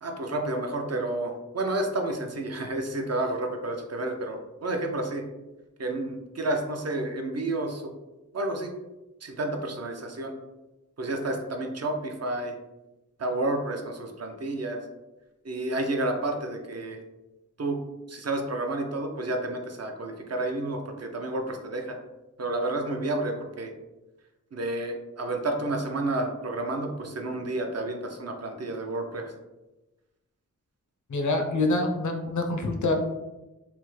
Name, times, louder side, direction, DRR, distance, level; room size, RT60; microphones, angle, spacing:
voice 1, 0.0-5.2 5.8-7.9 8.3-8.7 9.2-10.3 11.0-12.6 13.2-14.8 15.4-17.0 17.6-17.8 18.1-22.0 22.4-23.7 24.5-29.3, right 2 dB, 55° right, 3 dB, 0.5 m, -30 dB
voice 2, 31.1-32.9, left 2 dB, 65° left, 3 dB, 0.5 m, -26 dB
3.3 x 2.0 x 3.1 m, 1.0 s
wide cardioid pair, 80°, 32 cm